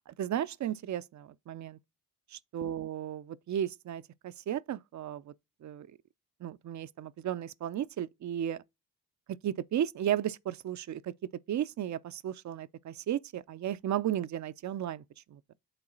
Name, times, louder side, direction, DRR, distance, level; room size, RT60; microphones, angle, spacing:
voice 1, 0.1-1.8 2.3-3.2 3.5-5.3 5.6-5.9 6.4-8.6 9.4-11.1 11.5-15.0 15.3-15.4, right 10 dB, 45° right, 0.6 m, -34 dB
8.9 x 3.7 x 3.9 m
hypercardioid pair, 50°, 40 cm